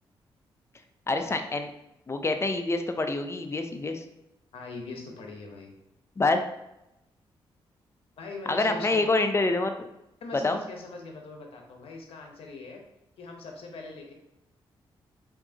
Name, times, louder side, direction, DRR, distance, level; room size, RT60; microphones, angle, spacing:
voice 1, 1.1-1.7 2.1-4.0 6.2-6.4 8.5-9.9 10.4-10.6, left 2 dB, 25° left, 6 dB, 0.5 m, -26 dB
voice 2, 4.5-5.7 8.2-9.1 10.2-12.8 13.2-14.1, left 3 dB, 75° left, 2 dB, 0.9 m, -41 dB
4.5 x 2.7 x 2.8 m, 0.88 s
cardioid pair, 65°, 10 cm